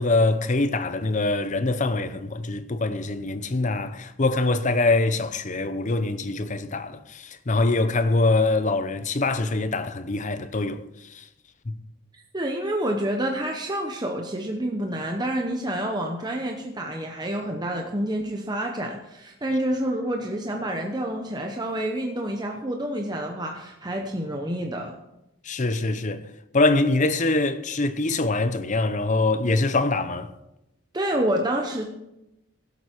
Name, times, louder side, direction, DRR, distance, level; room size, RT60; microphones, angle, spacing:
voice 1, 0.0-11.3 11.7-11.8 25.4-26.2 26.5-30.3, left 2 dB, 35° left, 0.7 m, -24 dB
voice 2, 12.3-24.9 30.9-31.8, right 1 dB, 20° right, 0.9 m, -28 dB
16.0 x 8.1 x 4.5 m
head